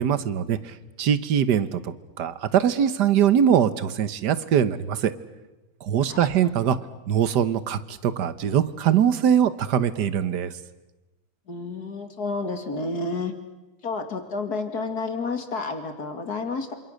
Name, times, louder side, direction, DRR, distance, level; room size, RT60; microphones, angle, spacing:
voice 1, 0.0-5.1 5.8-6.8 7.1-10.5, right 9 dB, 60° right, 14 dB, 1.6 m, -22 dB
voice 2, 11.5-13.3 13.8-16.7, left 3 dB, 50° left, 7 dB, 2.7 m, -30 dB
27.5 x 27.0 x 6.6 m, 1.1 s
omnidirectional pair, 2.2 m